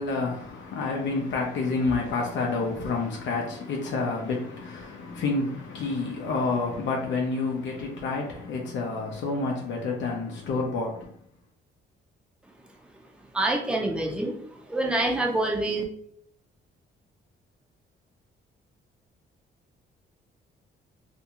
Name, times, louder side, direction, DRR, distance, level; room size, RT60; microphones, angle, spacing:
voice 1, 0.0-11.2, left 3 dB, 70° left, 0.6 m, -29 dB
voice 2, 13.3-15.8, right 2 dB, 5° right, 0.6 m, -26 dB
2.6 x 2.3 x 2.8 m
cardioid pair, 90°, 20 cm